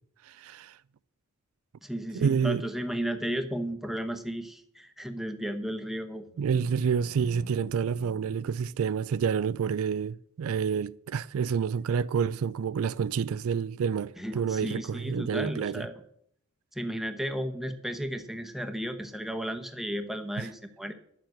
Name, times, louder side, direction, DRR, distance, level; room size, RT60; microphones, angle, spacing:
voice 1, 0.2-0.8 2.1-2.7 6.4-15.9 20.4-20.5, right 6 dB, 70° right, 0.3 m, -28 dB
voice 2, 1.8-6.3 14.2-15.9 16.7-20.9, equal, ahead, 0.9 m, -34 dB
sound 1, 6.2-9.2, left 1 dB, 50° left, 1.1 m, -50 dB
10.5 x 7.3 x 7.8 m
head